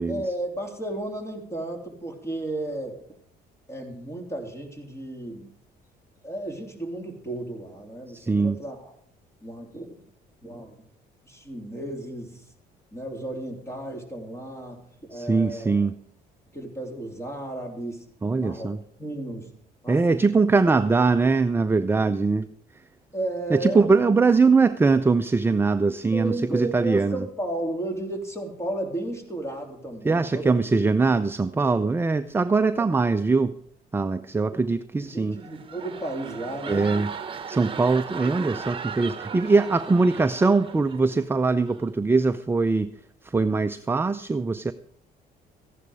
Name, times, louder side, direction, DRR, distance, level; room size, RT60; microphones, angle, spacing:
voice 1, 0.1-3.0 3.7-5.5 6.2-8.9 9.4-9.9 10.4-10.8 11.2-12.4 12.9-15.8 16.5-18.0 18.4-18.7 19.0-19.5 19.8-20.2 23.1-24.1 26.1-30.5 35.0-36.9 38.2-38.6, right 1 dB, 15° left, 3 dB, 3.4 m, -33 dB
voice 2, 8.1-8.6 15.1-15.9 18.2-18.8 19.9-22.5 23.5-27.3 30.0-33.5 33.9-35.4 36.7-37.1 37.5-42.9 43.2-44.7, right 4 dB, 15° right, 9 dB, 0.5 m, -22 dB
sound 1, 35.3-41.2 41.6-41.9, right 6 dB, 30° right, 1.3 m, -37 dB
14.5 x 11.0 x 4.9 m, 0.62 s
cardioid pair, 110°, 17 cm